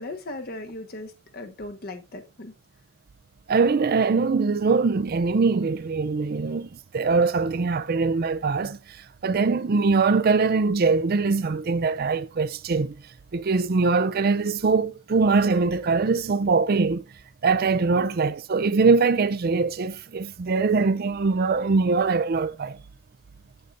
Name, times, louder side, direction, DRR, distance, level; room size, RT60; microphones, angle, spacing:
voice 1, 0.0-2.5 18.0-18.1, left 2 dB, 50° left, 1.3 m, -38 dB
voice 2, 3.5-8.8 9.2-13.0 13.3-17.0 17.4-22.8, right 4 dB, 50° right, 0.5 m, -22 dB
8.1 x 7.8 x 2.5 m
head